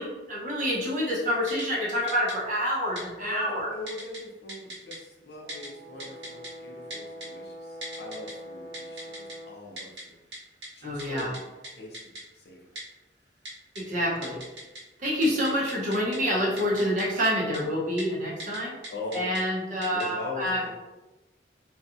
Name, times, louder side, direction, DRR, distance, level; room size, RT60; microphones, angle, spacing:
voice 1, 0.0-3.7 10.8-11.3 13.8-14.4 15.0-18.7 19.1-20.6, equal, 40° right, -5 dB, 0.7 m, -27 dB
Typing, 1.5-1.6 2.1-2.3 3.0-3.1 3.9-4.2 4.5-5.0 5.5-5.7 6.0-6.5 6.9-7.3 7.8-8.3 8.7-9.3 9.8-10.0 10.3-10.4 10.6-10.7 11.0-11.4 11.6-11.7 11.9-12.2 12.7-12.8 13.4-13.8 14.2-14.8 15.1-16.2 16.6-17.3 17.5-17.6 18.0-18.1 18.4-18.6 18.8-19.4 19.8-20.0, right 1 dB, 70° right, 0.9 m, -39 dB
voice 2, 3.2-10.2 10.8-11.4 11.7-12.7 18.9-19.4 19.9-20.7, left 2 dB, 60° left, -2 dB, 0.6 m, -40 dB
Brass instrument, 5.4-9.6, equal, 85° right, 0.5 m, -43 dB
2.7 x 2.2 x 2.5 m, 1.1 s
head